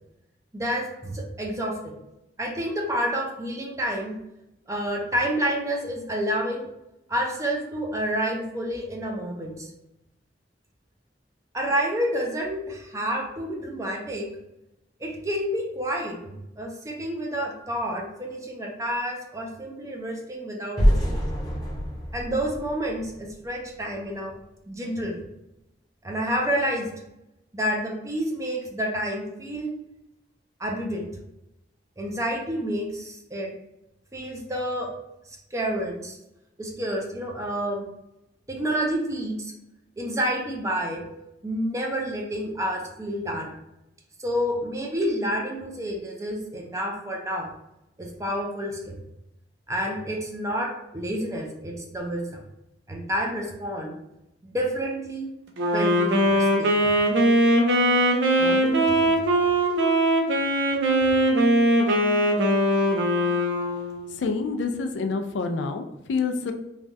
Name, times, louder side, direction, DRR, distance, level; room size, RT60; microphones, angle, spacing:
voice 1, 0.5-2.0 2.4-4.2 4.7-6.7 7.1-9.7 11.5-14.3 15.0-21.0 22.1-24.3 24.7-25.2 26.0-26.9 27.5-29.7 30.6-31.1 32.0-33.5 34.1-34.9 35.5-36.2 36.6-37.8 38.5-39.5 40.0-41.0 41.4-43.6 44.2-47.5 48.0-49.0 49.7-52.4 52.9-53.9 54.4-55.3 55.7-56.9 58.4-59.1, equal, 15° right, 0 dB, 0.5 m, -29 dB
sound 1, 20.8-23.8, equal, 20° left, 0.7 m, -25 dB
Wind instrument woodwind instrument, 55.6-64.2, right 1 dB, 80° right, 0.6 m, -21 dB
voice 2, 64.1-66.5, left 4 dB, 80° left, 7 dB, 0.4 m, -27 dB
3.2 x 2.3 x 2.6 m, 0.88 s
head